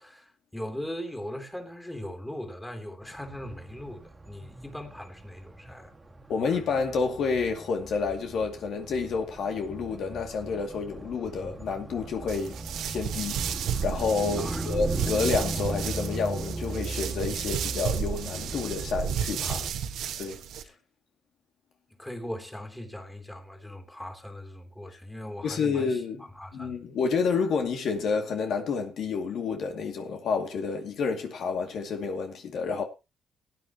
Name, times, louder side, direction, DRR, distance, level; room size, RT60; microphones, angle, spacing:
voice 1, 0.0-5.9 14.3-14.8 20.6-20.8 22.0-26.9, left 1 dB, 10° left, 3.2 m, -39 dB
sound 1, 3.0-19.7, right 2 dB, 20° right, 2.0 m, -38 dB
voice 2, 6.3-12.6 12.9-13.4 13.8-19.7 20.2-20.4 25.4-26.2 26.5-32.8, left 5 dB, 70° left, 2.5 m, -29 dB
sound 2, 12.3-20.6, right 8 dB, 85° right, 1.5 m, -33 dB
17.5 x 9.8 x 3.0 m
cardioid pair, 90°, 0 cm